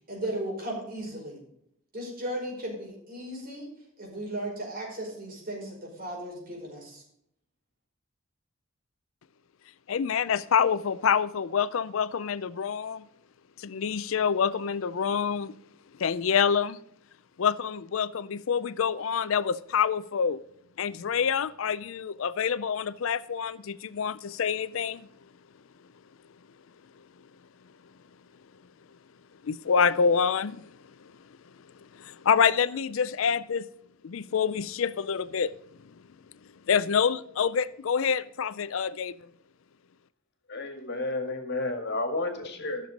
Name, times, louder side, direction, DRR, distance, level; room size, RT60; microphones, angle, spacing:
voice 1, 0.1-1.4 1.9-3.7 4.0-7.0, right 1 dB, 45° right, 5.1 m, -36 dB
voice 2, 9.9-13.0 13.6-15.5 16.0-16.8 17.4-20.4 20.8-25.1 29.4-30.6 31.0-31.1 31.9-33.7 34.0-35.5 36.7-39.2, left 6 dB, 75° left, 0.5 m, -27 dB
voice 3, 40.5-42.9, left 2 dB, 55° left, 2.0 m, -31 dB
13.5 x 6.8 x 5.1 m
head